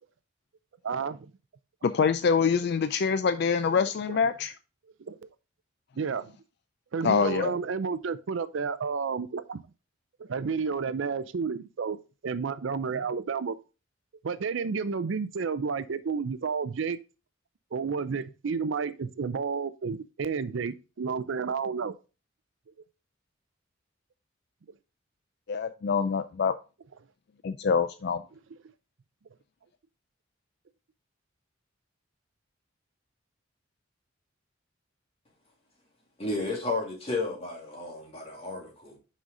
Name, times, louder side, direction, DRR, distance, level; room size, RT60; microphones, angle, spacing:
voice 1, 0.8-1.3 4.1-4.2 5.1-5.3 6.0-6.3 6.9-9.6 10.2-12.0 12.2-13.6 14.2-17.0 17.7-22.0, right 5 dB, 70° right, 0.5 m, -31 dB
voice 2, 1.8-4.5 7.0-7.5 25.5-26.5 27.4-28.2, left 6 dB, 55° left, 0.4 m, -25 dB
voice 3, 36.2-38.9, left 2 dB, 30° left, 2.3 m, -32 dB
6.1 x 5.6 x 3.7 m
head